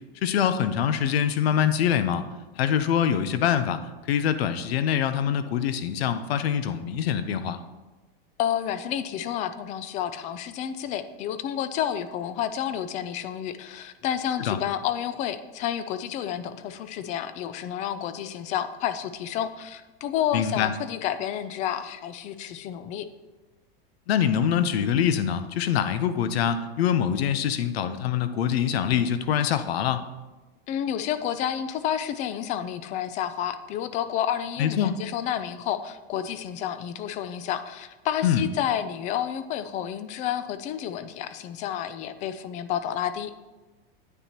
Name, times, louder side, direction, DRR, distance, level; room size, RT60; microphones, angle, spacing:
voice 1, 0.2-2.2 2.6-3.8 4.1-7.6 14.5-14.6 20.3-20.7 24.1-30.0 34.6-35.0 38.2-38.5, left 9 dB, 80° left, 11 dB, 0.8 m, -24 dB
voice 2, 8.4-23.1 30.7-43.3, left 10 dB, 25° left, 12 dB, 0.4 m, -30 dB
9.8 x 9.3 x 2.9 m, 1.2 s
supercardioid pair, 145°, 30 cm